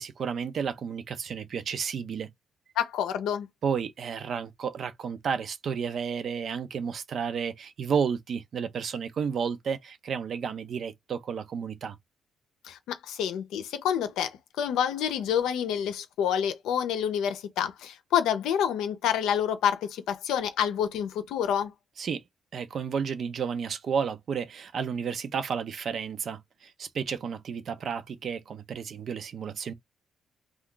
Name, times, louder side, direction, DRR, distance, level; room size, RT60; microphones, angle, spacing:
voice 1, 0.0-2.3 3.6-12.0 22.0-22.2 22.5-29.7, right 6 dB, 55° right, 0.5 m, -32 dB
voice 2, 2.8-3.5 12.6-21.7, left 9 dB, 85° left, 0.6 m, -28 dB
2.3 x 2.3 x 3.7 m
cardioid pair, 90°, 0 cm